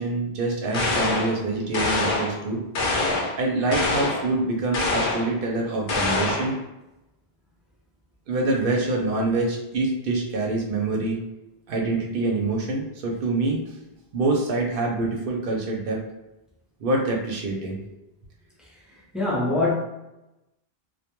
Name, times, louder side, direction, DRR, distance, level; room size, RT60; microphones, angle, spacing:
voice 1, 0.0-2.6 3.4-6.5 8.3-11.2 11.7-13.8 14.1-16.0 16.8-18.0, right 2 dB, 65° right, 0 dB, 0.7 m, -25 dB
sound 1, 0.7-1.4 1.7-2.4 2.7-3.4 3.7-4.3 4.7-5.3 5.9-6.5, left 2 dB, 65° left, 0.7 m, -24 dB
voice 2, 19.1-19.7, left 2 dB, ahead, -6 dB, 0.3 m, -22 dB
2.2 x 2.1 x 2.9 m, 0.95 s
omnidirectional pair, 1.1 m